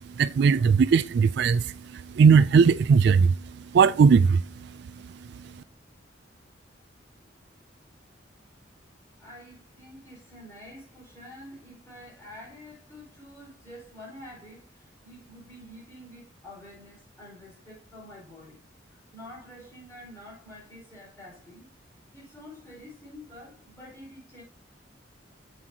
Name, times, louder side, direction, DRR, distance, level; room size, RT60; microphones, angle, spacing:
voice 1, 0.2-3.3 3.7-4.4, right 5 dB, 60° right, 0.3 m, -19 dB
voice 2, 9.2-18.6 18.8-21.7 22.1-24.4, left 1 dB, 15° left, 5.0 m, -47 dB
7.8 x 7.6 x 2.9 m
head